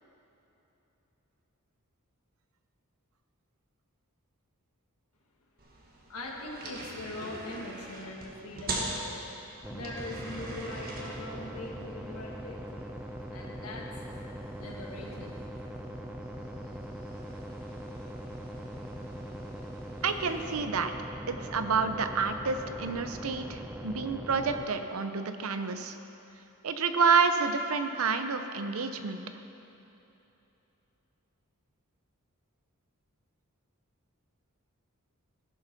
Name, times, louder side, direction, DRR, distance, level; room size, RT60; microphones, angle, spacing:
sound 1, 5.6-20.6, right 2 dB, 45° right, 1.4 m, -44 dB
voice 1, 6.1-9.2 9.7-12.6 13.3-13.9 14.6-15.5, left 1 dB, 80° left, -1 dB, 1.6 m, -41 dB
sound 2, 9.6-24.7, equal, 5° right, 0.4 m, -41 dB
voice 2, 20.0-20.9 21.3-26.0 26.6-29.2, right 5 dB, 70° right, 8 dB, 0.6 m, -29 dB
15.0 x 5.7 x 5.9 m, 3.0 s
head